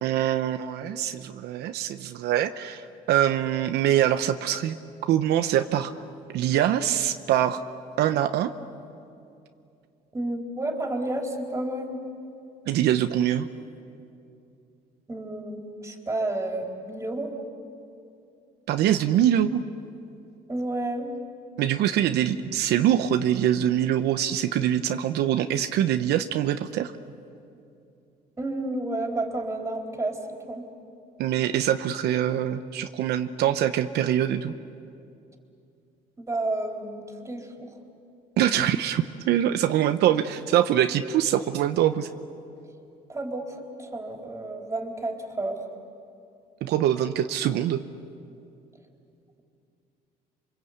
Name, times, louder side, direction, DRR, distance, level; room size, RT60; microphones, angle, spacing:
voice 1, 0.0-4.8 5.1-5.9 6.3-7.6 8.0-8.5 12.7-13.5 18.7-19.6 21.6-26.9 31.2-34.5 38.4-42.1 46.6-47.8, right 11 dB, 75° right, 9 dB, 0.9 m, -24 dB
voice 2, 10.1-12.0 15.1-17.3 20.5-21.1 28.4-30.2 30.5-30.7 36.2-37.7 43.1-45.6, right 2 dB, 15° right, 1 dB, 4.0 m, -31 dB
27.5 x 25.0 x 8.2 m, 2.6 s
cardioid pair, 110°, 17 cm